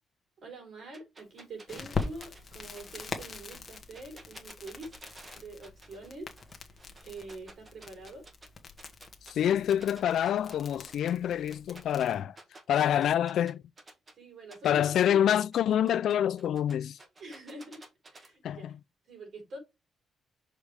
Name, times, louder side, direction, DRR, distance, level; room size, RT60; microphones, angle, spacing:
voice 1, 0.4-5.0 5.3-6.3 6.7-8.2 11.7-11.8 14.2-15.2 17.2-17.8 18.1-18.7 19.1-19.6, right 2 dB, 55° right, 4.3 m, -45 dB
sound 1, 0.9-6.1 6.4-8.5 8.8-14.1 14.5-18.3, right 2 dB, 25° right, 1.5 m, -52 dB
Crackle, 1.7-12.2, left 4 dB, 35° left, 1.3 m, -42 dB
voice 2, 9.3-12.4 12.7-13.6 14.6-17.0 18.4-18.7, left 10 dB, 70° left, 0.4 m, -26 dB
6.5 x 5.0 x 3.5 m
cardioid pair, 130°, 0 cm